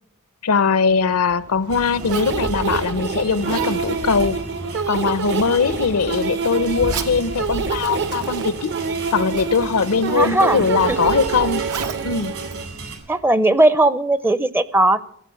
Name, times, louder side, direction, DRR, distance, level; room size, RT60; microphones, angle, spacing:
voice 1, 0.4-4.4 4.9-8.7 9.1-11.6 12.0-12.3, left 5 dB, 75° left, 0.7 m, -20 dB
Zipper (clothing), 0.8-13.4, right 5 dB, 90° right, 1.5 m, -37 dB
sound 1, 1.7-13.0, right 2 dB, 75° right, 4.2 m, -34 dB
sound 2, 2.1-12.7, right 5 dB, 55° right, 0.8 m, -26 dB
voice 2, 10.2-10.6 10.9-11.0 13.1-15.0, right 2 dB, 10° right, 0.5 m, -17 dB
15.5 x 7.8 x 8.9 m
head